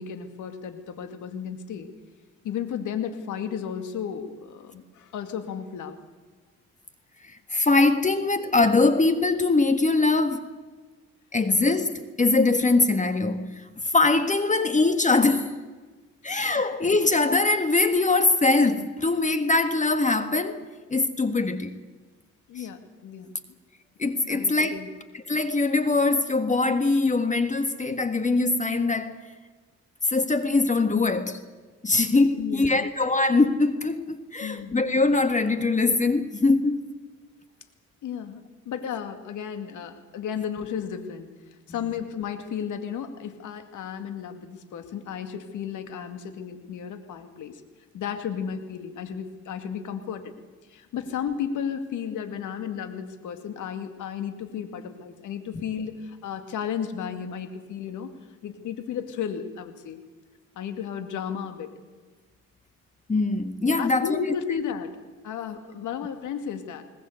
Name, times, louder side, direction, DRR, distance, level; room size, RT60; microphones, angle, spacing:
voice 1, 0.0-1.9 2.4-6.0 22.5-23.3 24.3-24.9 32.3-32.9 34.4-34.8 38.0-41.3 41.7-47.6 47.9-50.3 50.7-58.1 58.4-60.0 60.6-61.7 63.8-65.0 65.2-66.8, left 8 dB, 80° left, 2.3 m, -33 dB
voice 2, 7.2-10.5 11.3-13.7 13.9-15.5 16.2-21.8 22.6-22.7 24.0-24.8 25.3-29.2 30.0-31.4 31.8-36.8 63.1-64.2, left 3 dB, 25° left, 1.6 m, -22 dB
21.0 x 20.0 x 8.1 m
cardioid pair, 90°, 30 cm